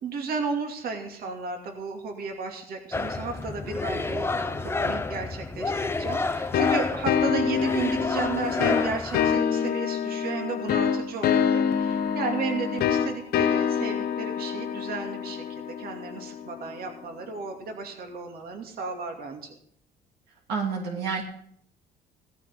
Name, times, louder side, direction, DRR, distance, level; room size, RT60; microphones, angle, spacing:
voice 1, 0.0-19.5, right 5 dB, 65° right, 3 dB, 2.5 m, -34 dB
sound 1, 2.9-9.4, left 3 dB, 15° left, 0.7 m, -30 dB
sound 2, 6.5-17.0, left 7 dB, 70° left, 1.0 m, -26 dB
voice 2, 20.5-21.2, right 5 dB, 80° right, 1 dB, 2.3 m, -28 dB
16.0 x 14.0 x 3.7 m, 0.66 s
cardioid pair, 110°, 17 cm